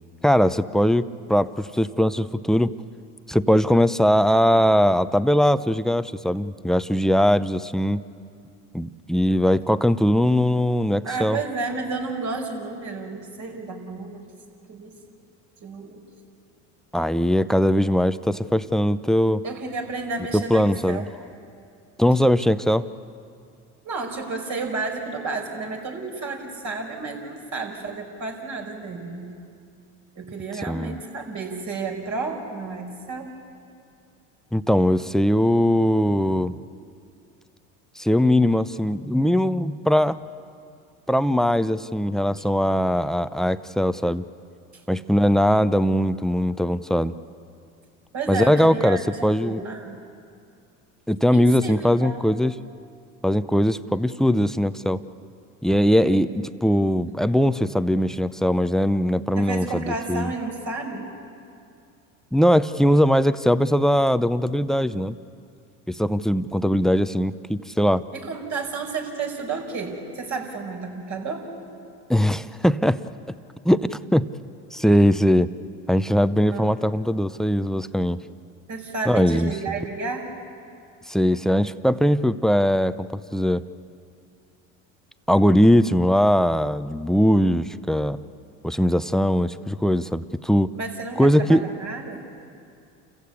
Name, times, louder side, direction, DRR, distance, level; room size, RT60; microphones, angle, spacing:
voice 1, 0.2-2.7 3.3-8.0 8.7-11.4 16.9-19.4 20.3-21.0 22.0-22.9 30.7-31.0 34.5-36.6 38.0-40.2 41.1-44.2 44.9-47.1 48.3-49.6 51.1-52.5 53.2-55.0 55.6-60.3 62.3-65.2 65.9-68.0 72.1-73.0 73.6-74.3 74.7-75.5 75.9-78.2 79.1-79.5 81.1-83.6 85.3-88.2 88.6-90.7 91.2-91.7, equal, ahead, 13 dB, 0.6 m, -20 dB
voice 2, 11.0-14.2 14.6-14.9 15.6-16.0 19.4-21.0 23.8-29.3 30.1-33.3 48.1-50.0 51.3-52.3 56.0-56.3 59.4-61.1 68.1-71.5 76.5-76.7 78.7-80.3 90.7-92.2, right 3 dB, 50° right, 1 dB, 5.2 m, -31 dB
29.0 x 15.5 x 8.3 m, 2.4 s
supercardioid pair, 85°, 37 cm